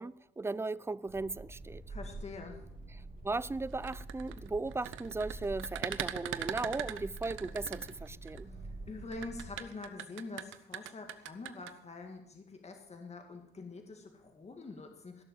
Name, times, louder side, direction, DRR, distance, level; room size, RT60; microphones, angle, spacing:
voice 1, 0.0-1.8 3.2-8.5, right 3 dB, 10° right, 0.4 m, -37 dB
sound 1, 1.1-9.6, right 2 dB, 45° right, 4.7 m, -47 dB
voice 2, 1.9-2.6 8.5-15.2, left 3 dB, 35° left, 2.1 m, -46 dB
sound 2, 3.7-8.4 9.1-11.7, right 12 dB, 85° right, 0.9 m, -40 dB
16.5 x 6.9 x 7.4 m
cardioid pair, 90°, 20 cm